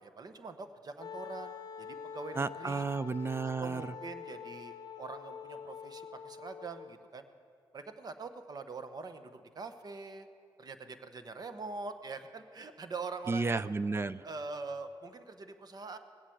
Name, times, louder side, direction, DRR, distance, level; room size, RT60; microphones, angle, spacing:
voice 1, 0.0-2.9 3.6-7.3 7.7-10.3 10.6-13.7 14.2-16.0, right 4 dB, 50° right, 9 dB, 1.0 m, -44 dB
Wind instrument woodwind instrument, 1.0-7.0, left 7 dB, 50° left, 0.7 m, -46 dB
voice 2, 2.4-3.8 13.3-14.3, right 4 dB, 30° right, 16 dB, 0.4 m, -32 dB
19.0 x 8.2 x 7.8 m, 2.3 s
cardioid pair, 70°, 9 cm